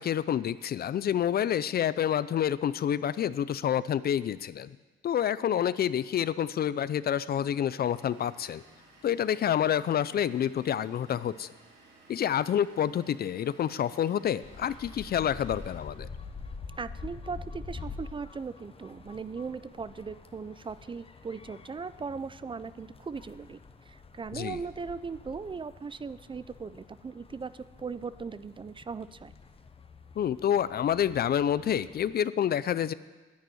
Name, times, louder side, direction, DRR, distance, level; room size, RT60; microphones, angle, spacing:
voice 1, 0.0-4.7 5.0-8.6 9.0-11.5 12.1-16.1 24.3-24.6 30.2-32.9, left 9 dB, 50° left, 17 dB, 0.5 m, -28 dB
Vehicle / Engine, 7.8-15.8, right 2 dB, 55° right, 5.2 m, -57 dB
sound 1, 14.4-32.1, left 4 dB, 30° left, 1.0 m, -47 dB
voice 2, 16.8-23.6 23.9-29.3, right 5 dB, 25° right, 15 dB, 0.4 m, -38 dB
10.5 x 9.6 x 9.3 m, 1.3 s
cardioid pair, 90°, 20 cm